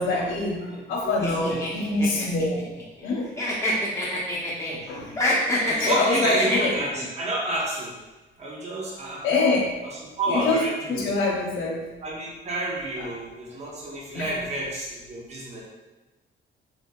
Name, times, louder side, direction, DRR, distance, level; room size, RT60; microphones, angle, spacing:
voice 1, 0.0-0.6 0.9-2.7 3.0-3.2 4.7-5.1 5.8-6.7 9.2-9.7 10.3-10.6 10.9-11.8 13.0-13.1 14.1-14.3, left 3 dB, 80° left, -2 dB, 0.8 m, -25 dB
voice 2, 0.6-1.1 1.5-1.6 5.4-7.9 8.4-9.2 9.8-11.0 12.0-15.6, right 1 dB, 35° right, -4 dB, 0.8 m, -30 dB
sound 1, 1.2-3.1 3.4-4.8 5.1-7.0, left 1 dB, 15° left, 0.8 m, -26 dB
2.9 x 2.7 x 2.2 m, 1.1 s
cardioid pair, 90°, 20 cm